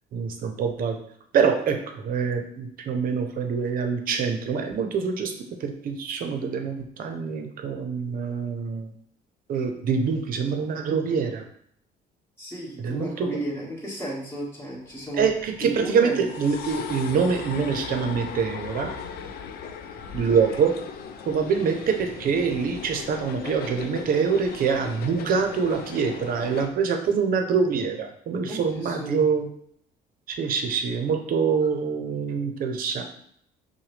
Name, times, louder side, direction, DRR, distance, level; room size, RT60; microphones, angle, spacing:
voice 1, 0.1-1.0 1.3-5.3 5.6-8.9 9.5-11.4 12.8-13.4 15.2-18.9 20.1-20.7 21.3-29.5 30.3-33.0, right 6 dB, 55° right, 5 dB, 0.7 m, -25 dB
voice 2, 12.4-15.3 15.6-16.2 20.2-20.4 28.5-29.2, right 1 dB, 15° left, -6 dB, 1.9 m, -33 dB
sound 1, 14.8-26.7, left 6 dB, 65° left, 0.5 m, -38 dB
6.0 x 2.3 x 3.3 m, 0.66 s
cardioid pair, 110°, 17 cm